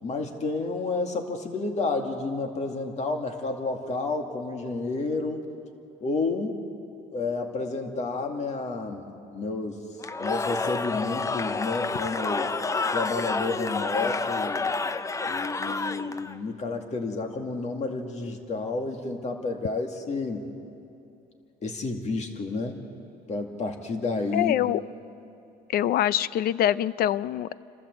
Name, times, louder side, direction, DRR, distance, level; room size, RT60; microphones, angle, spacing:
voice 1, 0.0-5.5 6.0-6.6 7.1-9.8 10.2-12.6 12.9-14.7 15.3-20.5 21.6-22.8 23.3-24.5, left 3 dB, 40° left, 4 dB, 2.3 m, -30 dB
Cheering / Crowd, 10.0-16.4, left 3 dB, 20° left, 0.5 m, -29 dB
voice 2, 24.3-24.8 25.7-27.5, left 12 dB, 65° left, 18 dB, 0.5 m, -24 dB
28.5 x 13.0 x 7.9 m, 2.8 s
cardioid pair, 110°, 17 cm